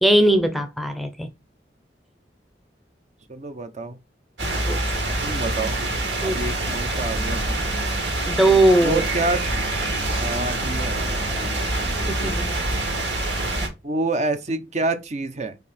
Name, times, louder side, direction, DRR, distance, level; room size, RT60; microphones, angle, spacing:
voice 1, 0.0-1.3 4.4-4.8 6.2-6.4 8.3-9.0 11.4-11.5 12.1-12.6, right 1 dB, ahead, 0.7 m, -20 dB
voice 2, 3.3-4.0 5.2-5.9 6.2-7.6 8.8-9.5 10.2-12.1 13.8-15.6, right 2 dB, 40° right, 0.8 m, -28 dB
sound 1, 4.4-13.7, right 2 dB, 80° right, 2.6 m, -25 dB
5.4 x 4.7 x 4.2 m
head